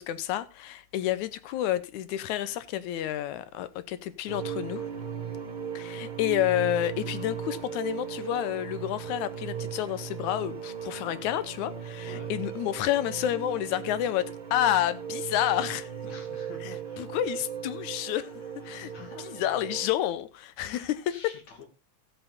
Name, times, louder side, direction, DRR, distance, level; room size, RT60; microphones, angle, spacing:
voice 1, 0.0-4.9 5.8-15.9 16.6-16.7 17.0-21.2, left 12 dB, 85° left, 2.2 m, -30 dB
sound 1, 4.3-19.9, right 8 dB, 60° right, 0.4 m, -37 dB
voice 2, 16.0-17.5 18.6-19.4 20.6-21.7, left 4 dB, 65° left, 3.8 m, -48 dB
14.0 x 7.9 x 4.0 m
omnidirectional pair, 3.3 m